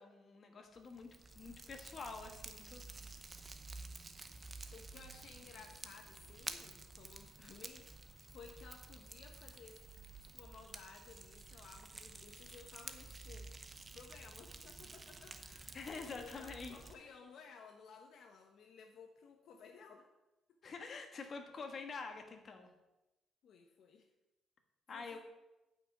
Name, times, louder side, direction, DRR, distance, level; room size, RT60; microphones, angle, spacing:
voice 1, 0.0-2.8 15.7-16.7 20.6-22.7 24.9-25.2, left 4 dB, 35° left, 4 dB, 1.5 m, -47 dB
Fire, 0.8-16.9, right 3 dB, 20° right, 0.8 m, -51 dB
voice 2, 4.7-7.9 8.3-9.8 10.2-13.5 13.9-15.8 16.1-20.1 20.5-20.7 23.4-24.1 24.9-25.2, left 5 dB, 60° left, 4 dB, 1.1 m, -57 dB
9.2 x 6.0 x 8.4 m, 0.98 s
cardioid pair, 160°, 0 cm